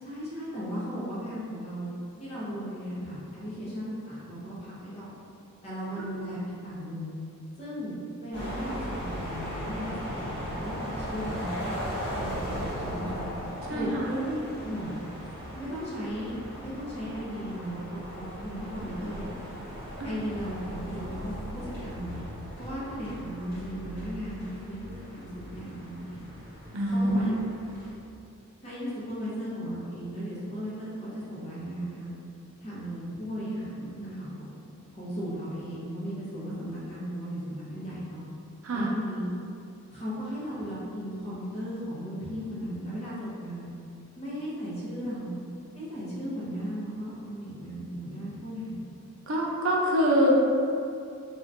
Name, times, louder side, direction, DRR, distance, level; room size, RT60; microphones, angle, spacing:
voice 1, 0.0-1.9 2.2-5.1 5.6-6.4 6.6-7.1 7.6-11.7 12.1-13.3 13.7-14.3 14.6-14.9 15.5-16.3 16.6-19.3 20.0-22.2 22.6-26.2 26.9-27.3 28.6-32.2 32.6-34.6 35.0-38.2 38.7-39.3 39.9-43.7 44.2-45.4 45.7-48.8, equal, 30° left, -9 dB, 0.9 m, -36 dB
sound 1, 8.3-27.9, equal, 45° left, 1.3 m, -38 dB
voice 2, 13.7-14.0 20.0-20.1 26.7-27.4 38.6-38.9 49.3-50.4, equal, 65° right, -3 dB, 0.5 m, -24 dB
3.0 x 2.4 x 3.6 m, 2.5 s
head